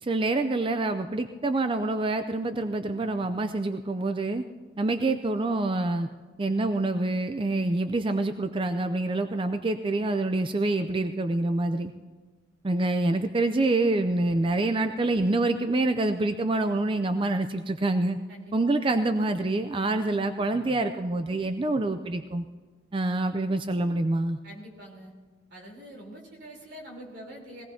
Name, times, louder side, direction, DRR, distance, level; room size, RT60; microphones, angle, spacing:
voice 1, 0.0-4.4 4.8-6.1 6.4-11.9 12.6-18.2 18.5-22.4 22.9-24.4, right 2 dB, 25° right, 8 dB, 0.4 m, -26 dB
voice 2, 24.4-25.1 25.5-27.6, equal, 60° right, -1 dB, 3.6 m, -45 dB
21.5 x 17.0 x 2.8 m, 1.4 s
head